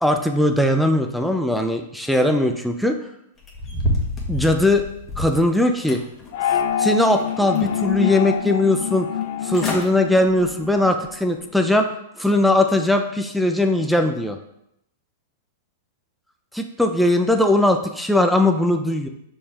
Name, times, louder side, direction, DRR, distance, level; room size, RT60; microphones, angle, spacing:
voice 1, 0.0-3.0 4.3-4.8 5.2-6.0 6.8-9.1 9.4-11.9 12.2-14.4 16.5-19.1, left 1 dB, ahead, 4 dB, 0.6 m, -19 dB
sound 1, 3.4-5.4 5.9-6.7 7.1-8.0 8.4-8.5 9.2-9.3 9.5-9.9 10.3-10.6 11.1-11.2, left 1 dB, 20° left, 1.6 m, -28 dB
sound 2, 6.3-10.9, left 8 dB, 55° left, 0.5 m, -26 dB
5.3 x 4.7 x 5.0 m, 0.79 s
hypercardioid pair, 125°, 0 cm